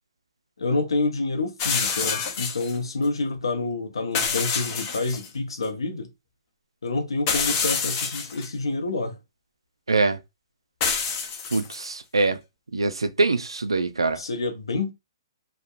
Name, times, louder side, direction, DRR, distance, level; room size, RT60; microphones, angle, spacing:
voice 1, 0.6-6.1 6.8-9.2 14.2-14.9, left 3 dB, 80° left, 0.7 m, -28 dB
sound 1, 1.6-2.8 4.1-5.3 5.6-5.7 7.3-8.5 10.8-11.9, left 6 dB, 35° left, 0.7 m, -27 dB
voice 2, 9.9-10.2 11.5-12.4 12.7-14.2, right 3 dB, 90° right, 0.4 m, -23 dB
2.9 x 2.2 x 2.4 m
hypercardioid pair, 130°, 3 cm